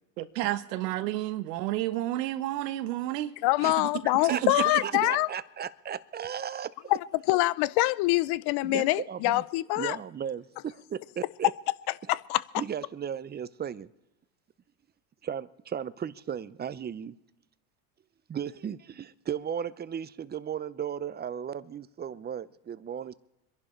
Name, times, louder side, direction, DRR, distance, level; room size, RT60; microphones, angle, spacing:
voice 1, 0.2-3.9 4.2-5.1, right 15 dB, 85° right, 1.2 m, -31 dB
voice 2, 3.4-5.3 6.9-7.0 7.3-10.0 12.1-12.4, left 19 dB, 55° left, 0.7 m, -25 dB
voice 3, 4.8-6.7 8.6-9.4 9.8-11.5 12.6-13.9 15.2-17.2 18.3-23.1, right 8 dB, 20° right, 0.7 m, -35 dB
26.0 x 11.0 x 4.5 m
supercardioid pair, 100°, 48 cm